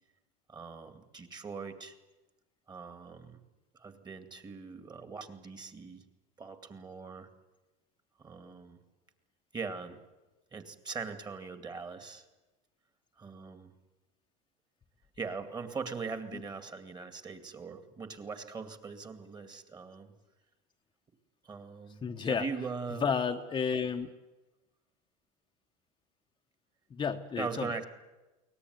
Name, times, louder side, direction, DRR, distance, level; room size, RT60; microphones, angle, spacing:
voice 1, 0.5-2.0 2.7-3.4 3.8-6.0 6.4-7.3 8.2-8.8 9.5-10.0 10.5-12.3 13.2-13.7 15.2-20.1 21.4-23.0 27.4-27.8, right 5 dB, 20° right, 9 dB, 2.3 m, -41 dB
voice 2, 22.0-22.4 23.0-24.1 26.9-27.7, left 6 dB, 25° left, 5 dB, 1.0 m, -31 dB
22.5 x 18.5 x 9.6 m, 1.1 s
supercardioid pair, 120°, 20 cm